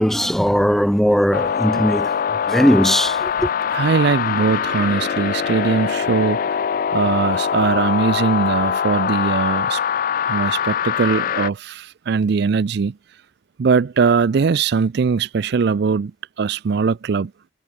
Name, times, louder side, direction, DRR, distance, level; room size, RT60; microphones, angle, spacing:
voice 1, 0.0-2.1 2.5-3.5, equal, ahead, 0.9 m, -18 dB
sound 1, 1.3-11.5, left 7 dB, 45° left, 0.3 m, -22 dB
voice 2, 3.7-6.6 6.9-9.8 10.2-13.0 13.6-16.1 16.4-17.3, right 5 dB, 55° right, 0.4 m, -20 dB
head